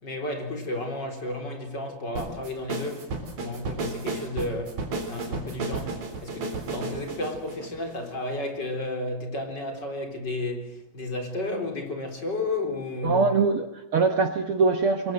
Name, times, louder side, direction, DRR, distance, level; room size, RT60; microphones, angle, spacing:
voice 1, 0.0-3.1 3.4-4.8 5.1-13.3, left 2 dB, 25° left, 4.2 m, -32 dB
sound 1, 2.2-8.5, right 3 dB, 55° right, 5.1 m, -33 dB
voice 2, 13.0-15.1, right 4 dB, 85° right, 1.2 m, -23 dB
26.0 x 22.5 x 7.7 m
omnidirectional pair, 4.4 m